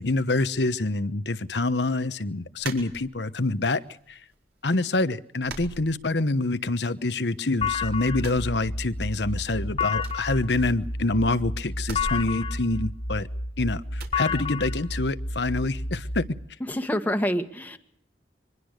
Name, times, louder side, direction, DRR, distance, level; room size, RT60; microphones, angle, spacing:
voice 1, 0.0-4.2 4.6-13.3 13.6-16.3, left 2 dB, 75° left, 1.1 m, -26 dB
sound 1, 2.6-3.5 3.9-4.6 4.8-5.0 5.4-6.6 6.9-7.7 8.1-9.3 9.5-9.6 9.9-11.1 11.8-13.4 13.9-14.2, right 2 dB, 60° right, 4.7 m, -41 dB
sound 2, 7.6-16.3, left 3 dB, 35° left, 1.1 m, -31 dB
voice 2, 16.6-17.8, equal, 10° left, 1.6 m, -27 dB
24.5 x 20.5 x 6.6 m
head